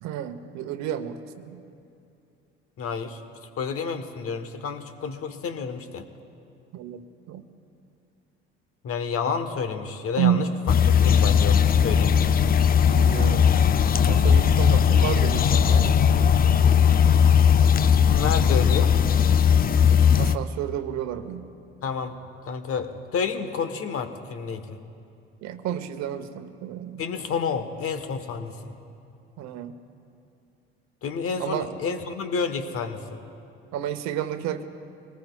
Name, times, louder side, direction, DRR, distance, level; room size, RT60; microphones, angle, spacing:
voice 1, 0.0-1.6 6.7-7.4 10.2-10.5 12.9-13.5 14.1-16.0 20.2-21.5 25.4-27.0 29.4-29.8 31.4-31.7 33.7-34.6, right 10 dB, 60° right, 10 dB, 1.0 m, -30 dB
voice 2, 2.8-3.2 3.6-6.1 8.8-10.4 11.0-12.3 18.1-18.9 21.8-22.1 22.5-24.8 27.0-28.7 31.0-33.2, left 5 dB, 45° left, 9 dB, 1.2 m, -30 dB
sound 1, 10.7-20.4, left 7 dB, 30° left, 0.5 m, -18 dB
24.0 x 19.0 x 2.4 m, 2.6 s
hypercardioid pair, 60°, 31 cm